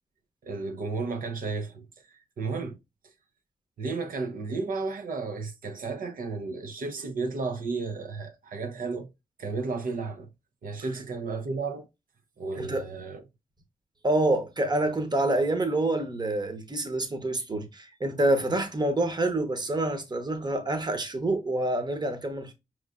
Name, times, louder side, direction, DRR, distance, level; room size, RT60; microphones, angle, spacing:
voice 1, 0.4-2.8 3.8-9.1 9.4-10.3 10.6-11.9 12.4-13.2, right 4 dB, 80° right, 0.7 m, -33 dB
voice 2, 14.0-22.5, right 2 dB, 30° right, 0.9 m, -27 dB
4.9 x 3.2 x 2.4 m
cardioid pair, 75°, 14 cm